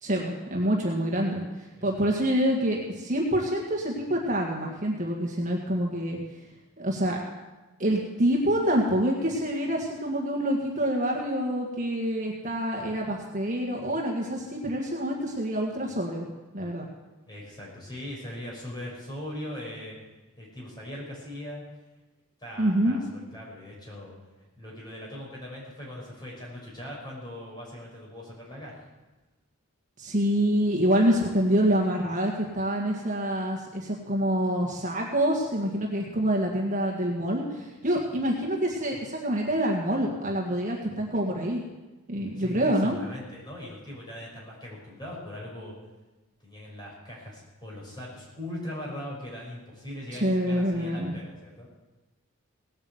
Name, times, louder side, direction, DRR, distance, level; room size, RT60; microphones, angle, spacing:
voice 1, 0.0-1.4 1.8-6.2 6.8-7.2 7.8-16.3 16.5-16.9 22.6-23.0 30.0-41.6 42.1-43.0 50.2-51.1, equal, 35° right, -1 dB, 1.8 m, -26 dB
voice 2, 17.3-20.0 20.4-21.6 22.4-24.2 24.6-28.8 36.0-36.1 42.3-45.7 46.4-51.7, left 1 dB, 20° left, -4 dB, 5.9 m, -40 dB
18.0 x 8.7 x 8.1 m, 1.1 s
head